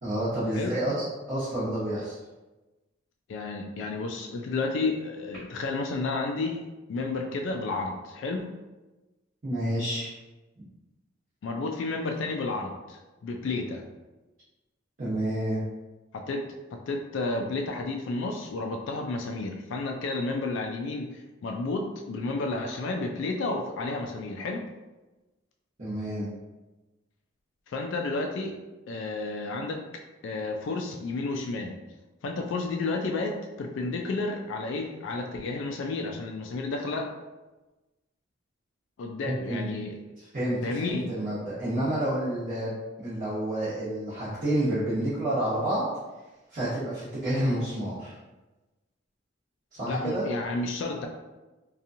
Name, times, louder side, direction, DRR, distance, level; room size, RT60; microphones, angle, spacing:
voice 1, 0.0-2.2 9.4-10.1 15.0-15.6 25.8-26.3 39.2-39.7 40.3-45.8 46.5-48.1 49.7-50.3, right 1 dB, 45° right, -12 dB, 1.0 m, -29 dB
voice 2, 3.3-6.6 6.9-8.5 11.4-13.8 16.1-16.4 16.7-24.6 27.7-28.5 28.9-29.8 30.2-31.8 32.2-37.1 39.0-40.0 40.6-41.1 49.9-51.1, left 3 dB, 70° left, 3 dB, 0.3 m, -31 dB
2.8 x 2.3 x 2.6 m, 1.1 s
head